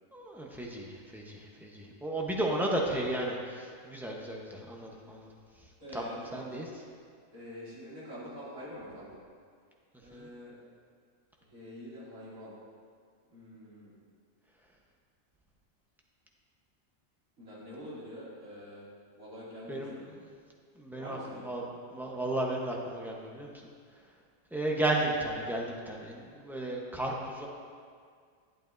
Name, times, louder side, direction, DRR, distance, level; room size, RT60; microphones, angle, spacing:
voice 1, 0.1-5.3 5.9-6.7 10.1-10.3 19.7-19.9 20.8-21.2 21.4-23.5 24.5-27.5, right 1 dB, ahead, -2 dB, 0.7 m, -34 dB
voice 2, 5.8-6.5 7.3-9.2 10.0-10.6 11.5-12.5 13.3-13.9 17.4-18.9 19.2-20.0 20.9-21.5, equal, 80° right, -9 dB, 3.1 m, -45 dB
11.0 x 9.2 x 2.6 m, 2.1 s
omnidirectional pair, 1.4 m